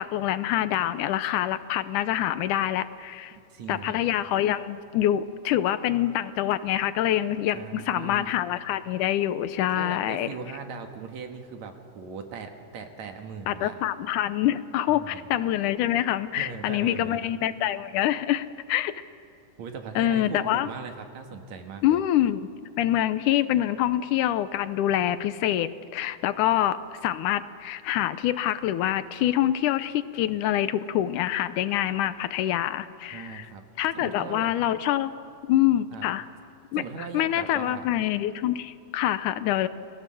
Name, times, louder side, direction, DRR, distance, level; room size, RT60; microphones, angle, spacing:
voice 1, 0.0-3.3 3.7-10.3 13.5-18.9 20.0-20.7 21.8-22.5 22.8-33.5 33.8-35.1 35.5-36.3 36.7-36.8 37.1-39.7, left 12 dB, 75° left, 13 dB, 2.2 m, -26 dB
voice 2, 3.5-4.0 7.5-8.3 9.7-13.8 14.9-15.4 16.3-17.3 19.6-22.0 33.1-33.6 33.9-34.5 35.9-36.1 36.7-37.8, right 5 dB, 65° right, 5 dB, 2.8 m, -39 dB
29.5 x 20.5 x 7.7 m, 2.3 s
omnidirectional pair, 3.7 m